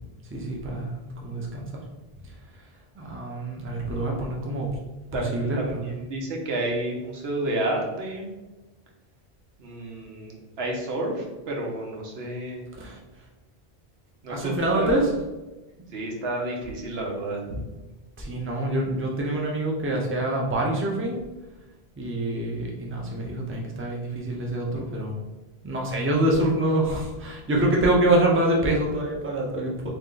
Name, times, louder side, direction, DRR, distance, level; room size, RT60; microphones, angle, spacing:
voice 1, 0.3-1.8 3.0-4.7 5.1-5.9 12.8-13.0 14.3-15.1 18.2-21.2 22.0-25.2 25.6-29.9, right 1 dB, 15° right, -1 dB, 0.5 m, -26 dB
voice 2, 5.5-8.3 9.6-12.6 14.2-15.0 15.9-17.6, right 1 dB, 80° right, 0 dB, 1.0 m, -30 dB
3.2 x 2.8 x 3.7 m, 1.1 s
omnidirectional pair, 1.0 m